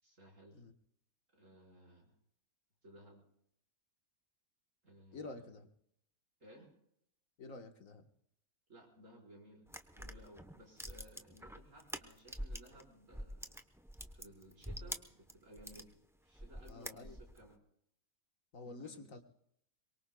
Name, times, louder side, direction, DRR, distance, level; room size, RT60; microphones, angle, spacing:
voice 1, 0.0-0.6 1.3-2.2 2.8-3.3 4.8-5.4 6.4-6.8 8.7-13.6 14.1-15.9 16.2-17.6 18.7-19.1, right 1 dB, 70° right, -1 dB, 5.3 m, -59 dB
voice 2, 5.1-5.7 7.4-8.1 16.7-17.2 18.5-19.2, left 3 dB, 75° left, 6 dB, 1.8 m, -49 dB
sound 1, 9.7-12.8 13.1-15.9 16.3-17.4, equal, 5° right, 0.7 m, -46 dB
23.5 x 23.0 x 2.3 m, 0.72 s
omnidirectional pair, 1.4 m